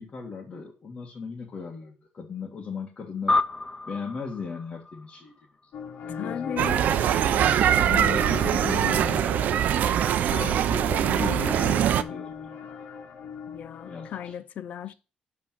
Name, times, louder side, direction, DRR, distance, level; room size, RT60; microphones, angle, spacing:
voice 1, 0.0-3.4 3.9-5.3 6.0-6.6 7.7-9.2 10.4-12.6 13.8-14.4 14.9-15.0, left 5 dB, 35° left, 1.8 m, -37 dB
sound 1, 3.3-6.0, left 2 dB, 15° left, 0.6 m, -30 dB
sound 2, 5.7-14.3, left 6 dB, 85° left, 1.5 m, -39 dB
voice 2, 6.2-6.8 7.9-8.7 10.3-11.4 13.5-14.9, left 9 dB, 65° left, 0.6 m, -37 dB
sound 3, 6.6-12.0, right 10 dB, 75° right, 0.6 m, -23 dB
11.0 x 3.8 x 7.5 m
cardioid pair, 160°, 3 cm